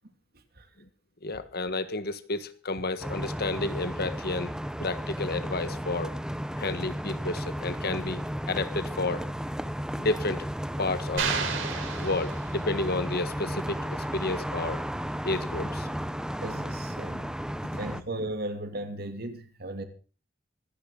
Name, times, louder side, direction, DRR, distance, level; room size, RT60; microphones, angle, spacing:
voice 1, 1.2-4.5 4.8-6.1 6.6-9.2 10.0-10.4 10.8-11.3 12.0-14.8 15.2-16.0 17.1-17.2, left 2 dB, 55° left, 1.5 m, -31 dB
sound 1, 3.0-18.0, equal, 5° right, 0.9 m, -34 dB
sound 2, 11.2-12.9, right 5 dB, 75° right, 4.3 m, -32 dB
voice 2, 16.4-17.2 17.8-19.8, right 1 dB, 55° right, 2.7 m, -36 dB
25.0 x 10.0 x 3.9 m
head